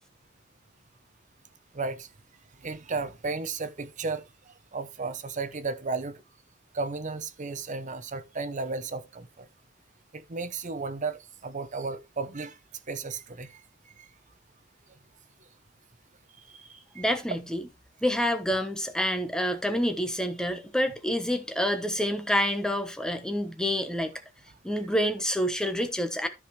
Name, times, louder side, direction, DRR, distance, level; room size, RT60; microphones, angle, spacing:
voice 1, 1.7-2.1 2.6-4.2 4.7-6.1 6.7-9.5 10.1-12.6 12.9-13.6 14.0-14.1 16.5-16.7 16.9-17.0, right 4 dB, 40° right, 0.8 m, -34 dB
voice 2, 16.9-17.6 18.0-24.1 24.6-26.3, equal, 5° left, 1.1 m, -27 dB
13.5 x 5.1 x 3.2 m
head